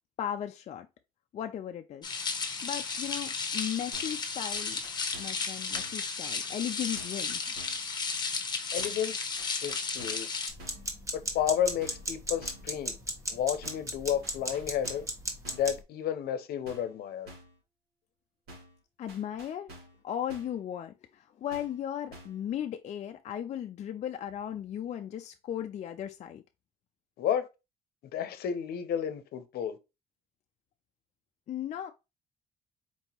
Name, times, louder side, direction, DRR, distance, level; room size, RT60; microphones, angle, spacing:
voice 1, 0.2-0.9 1.3-4.8 5.2-7.5 19.0-19.7 20.0-26.4 31.5-31.9, left 10 dB, 45° left, 0.4 m, -36 dB
sound 1, 2.0-10.5, left 5 dB, 25° left, 1.0 m, -34 dB
sound 2, 3.9-4.2 4.5-5.5 5.7-6.1 7.0-7.3 7.6-7.9 8.8-9.1 9.4-10.3 10.6-10.9 11.8-12.1 12.4-12.7 13.6-13.9 14.2-15.2 15.4-15.8 16.7-17.0 17.3-17.6 18.5-18.8 19.1-20.0 20.3-20.6 21.5-21.8 22.1-22.4, right 1 dB, 70° right, 2.0 m, -50 dB
voice 2, 8.7-9.1 9.6-10.3 11.1-13.0 13.3-15.1 15.5-17.3 27.2-27.5 28.1-29.8, left 9 dB, 65° left, 0.7 m, -31 dB
sound 3, 10.5-15.8, right 1 dB, 15° right, 1.0 m, -35 dB
4.4 x 2.9 x 2.8 m
cardioid pair, 110°, 17 cm